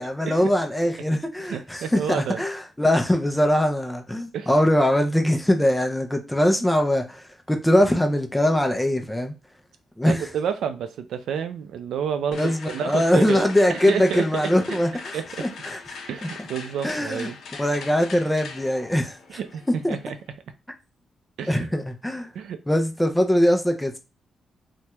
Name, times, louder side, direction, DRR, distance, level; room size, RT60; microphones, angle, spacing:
voice 1, 0.0-9.3 10.0-10.3 12.3-15.1 15.4-15.8 16.8-17.3 17.6-19.4 19.8-20.0 21.5-22.3 22.7-24.0, left 1 dB, 5° left, 0.4 m, -22 dB
voice 2, 1.5-2.4 4.3-4.5 10.0-14.8 15.1-15.5 16.1-17.4 19.3-19.6 19.9-20.2 21.4-21.7 22.3-22.6, right 7 dB, 85° right, 0.4 m, -30 dB
sound 1, 12.3-20.3, left 5 dB, 65° left, 0.5 m, -40 dB
3.3 x 2.1 x 2.8 m
wide cardioid pair, 175°, 0 cm